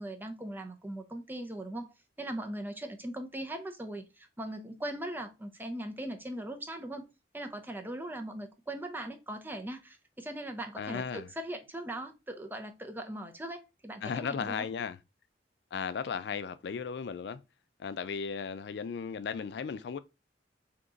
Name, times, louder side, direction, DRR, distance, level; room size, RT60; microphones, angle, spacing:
voice 1, 0.0-7.1 7.3-14.7, right 1 dB, 10° right, 0.6 m, -40 dB
voice 2, 10.8-11.3 14.0-15.0 15.7-17.4 17.8-20.0, left 6 dB, 65° left, 0.3 m, -35 dB
3.7 x 2.9 x 3.7 m
head